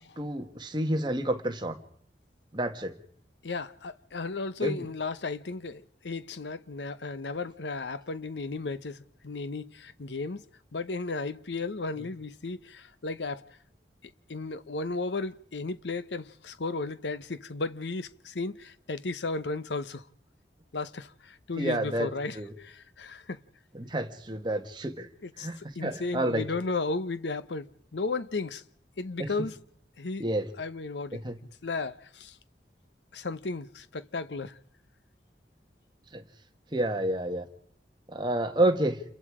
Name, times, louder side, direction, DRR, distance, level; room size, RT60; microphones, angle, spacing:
voice 1, 0.2-1.8 2.5-2.9 4.6-4.8 21.6-22.1 22.3-22.5 23.7-25.1 25.4-26.5 29.2-29.3 30.2-30.5 31.1-31.4 36.1-36.2 36.7-37.5 38.1-39.0, right 1 dB, 25° right, 1.6 m, -29 dB
voice 2, 3.4-10.4 10.7-13.4 14.3-20.0 20.7-23.4 25.2-28.6 29.0-29.6 30.0-30.2 30.6-31.2 31.6-32.4 33.1-34.6, left 3 dB, 90° left, 0.9 m, -34 dB
28.5 x 22.5 x 5.0 m
head